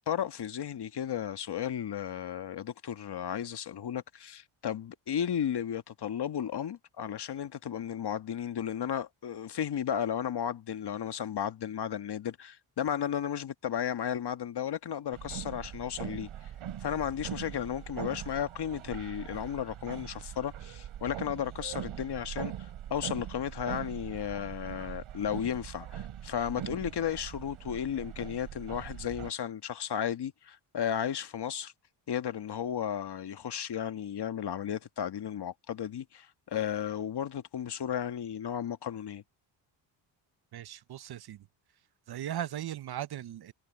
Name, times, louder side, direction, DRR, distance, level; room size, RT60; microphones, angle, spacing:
voice 1, 0.0-16.3 16.8-22.5 22.9-31.7 32.1-39.2, left 9 dB, 50° left, 1.5 m, -34 dB
sound 1, 15.1-29.3, right 10 dB, 70° right, 4.0 m, -42 dB
voice 2, 40.5-41.5 42.1-43.5, right 11 dB, 50° right, 0.7 m, -38 dB
cardioid pair, 75°, 50 cm